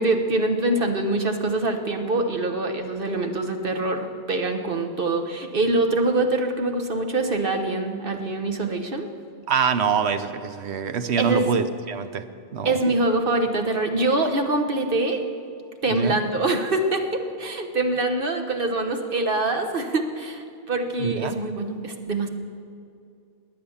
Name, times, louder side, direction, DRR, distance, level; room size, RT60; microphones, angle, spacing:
voice 1, 0.0-9.1 11.2-11.5 12.6-15.2 15.8-22.3, right 2 dB, 55° right, 5 dB, 1.4 m, -24 dB
voice 2, 9.5-12.2 12.5-12.8 15.9-16.2 21.0-21.3, right 6 dB, 75° right, 10 dB, 1.1 m, -25 dB
21.0 x 8.6 x 7.2 m, 2.5 s
omnidirectional pair, 1.1 m